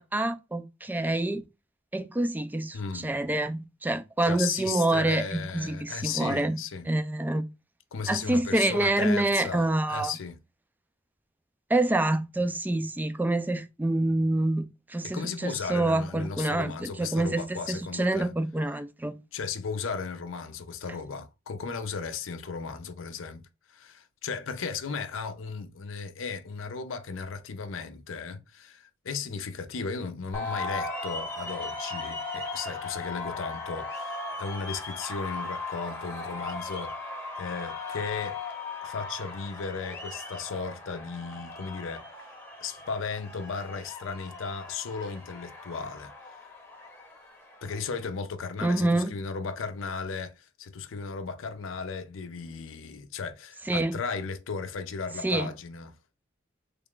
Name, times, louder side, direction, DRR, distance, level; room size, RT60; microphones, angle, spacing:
voice 1, 0.0-1.4 1.9-6.6 6.9-7.5 8.1-10.1 11.7-19.1 48.6-49.1 53.7-54.0 55.2-55.5, right 2 dB, 10° right, 0.3 m, -27 dB
voice 2, 2.7-3.1 4.2-6.9 7.9-10.4 15.1-18.3 19.3-23.4 23.7-36.9 37.3-38.4 38.8-42.1 42.6-46.1 47.6-55.9, left 5 dB, 80° left, 0.5 m, -35 dB
sound 1, 30.3-48.1, left 3 dB, 10° left, 0.8 m, -38 dB
3.3 x 2.4 x 3.6 m
head